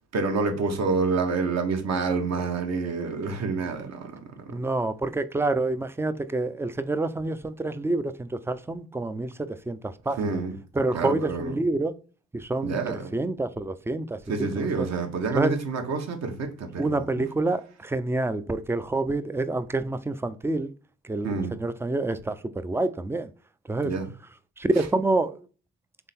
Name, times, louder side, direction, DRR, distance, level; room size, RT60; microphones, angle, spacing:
voice 1, 0.1-4.5 10.2-10.6 10.9-11.5 12.6-13.1 14.3-17.2 21.2-21.6 23.8-24.1, right 4 dB, 60° right, 1.1 m, -28 dB
voice 2, 4.5-9.3 9.7-10.4 10.7-11.9 12.3-12.8 13.1-14.9 15.3-15.5 16.8-20.7 21.0-23.3 23.7-23.9 24.6-25.5, right 2 dB, 10° right, 0.3 m, -27 dB
3.7 x 3.3 x 4.2 m
cardioid pair, 90°, 30 cm